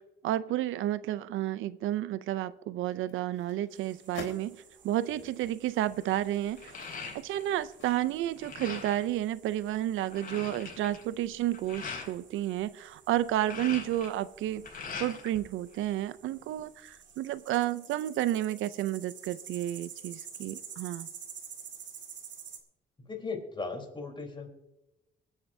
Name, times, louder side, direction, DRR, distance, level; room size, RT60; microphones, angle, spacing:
voice 1, 0.0-4.6 4.8-6.8 7.1-14.7 15.0-21.1, right 13 dB, 85° right, 16 dB, 0.5 m, -31 dB
sound 1, 2.9-4.5 5.1-5.2 5.8-8.4 8.8-8.9, left 5 dB, 75° left, 3.7 m, -49 dB
sound 2, 3.7-22.6, right 7 dB, 65° right, 2.1 m, -51 dB
sound 3, 5.2-5.4 5.9-7.6 7.9-9.1 9.6-9.7 9.9-12.1 13.1-15.4 15.7-16.6, left 5 dB, 45° left, 4.8 m, -42 dB
voice 2, 23.0-24.5, left 4 dB, 25° left, 3 dB, 3.7 m, -37 dB
24.0 x 9.4 x 2.7 m, 0.94 s
cardioid pair, 90°, 20 cm